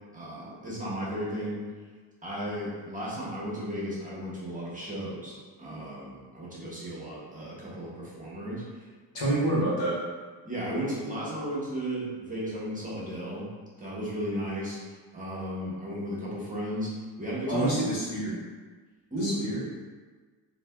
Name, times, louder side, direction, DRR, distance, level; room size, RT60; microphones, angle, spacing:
voice 1, 0.1-1.6 2.2-8.6 9.2-9.4 10.4-13.5 13.8-14.8 15.1-16.9 17.2-17.7 19.1-19.4, equal, 15° right, -7 dB, 1.0 m, -34 dB
voice 2, 9.1-10.0 17.5-18.4 19.1-19.6, right 1 dB, 65° left, -7 dB, 1.4 m, -27 dB
3.2 x 2.8 x 2.2 m, 1.4 s
supercardioid pair, 70°, 47 cm